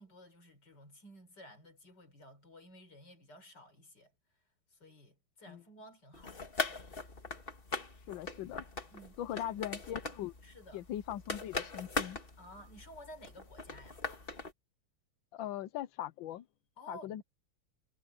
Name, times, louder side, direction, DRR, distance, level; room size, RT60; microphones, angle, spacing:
voice 1, 0.0-4.1 4.7-6.4 8.9-9.6 10.4-10.8 12.4-14.0 16.8-17.2, equal, 50° left, 5.7 m, -54 dB
sound 1, 6.1-14.5, left 3 dB, 30° left, 1.7 m, -41 dB
voice 2, 8.1-8.6 9.2-10.3 10.7-12.2 15.3-16.4 16.9-17.2, left 12 dB, 70° left, 1.3 m, -40 dB
omnidirectional pair, 2.4 m